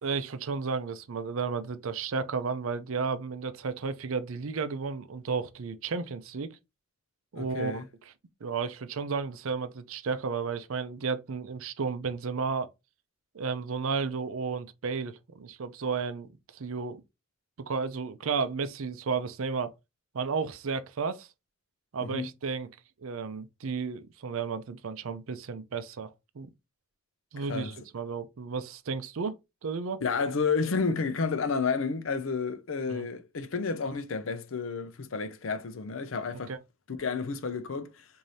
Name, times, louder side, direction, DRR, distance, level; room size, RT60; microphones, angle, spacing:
voice 1, 0.0-6.6 7.3-7.8 8.4-12.7 13.3-17.0 17.6-19.7 20.1-21.3 21.9-22.7 23.0-26.5 27.3-30.0 32.9-33.1 36.5-36.6, right 5 dB, 75° right, 0.5 m, -33 dB
voice 2, 7.4-7.8 22.0-22.3 27.4-27.7 30.0-36.5 36.9-38.1, left 5 dB, 70° left, 0.5 m, -31 dB
4.8 x 2.7 x 2.7 m
head